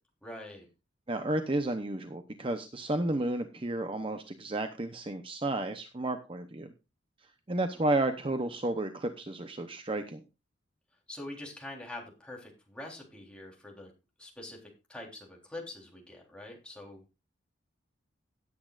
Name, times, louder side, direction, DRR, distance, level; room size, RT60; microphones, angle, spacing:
voice 1, 0.2-0.7 11.1-13.9 14.2-17.0, left 1 dB, 5° left, -1 dB, 3.6 m, -44 dB
voice 2, 1.1-6.7 7.5-10.2, right 2 dB, 30° right, 7 dB, 0.8 m, -32 dB
17.5 x 8.6 x 2.5 m, 0.27 s
head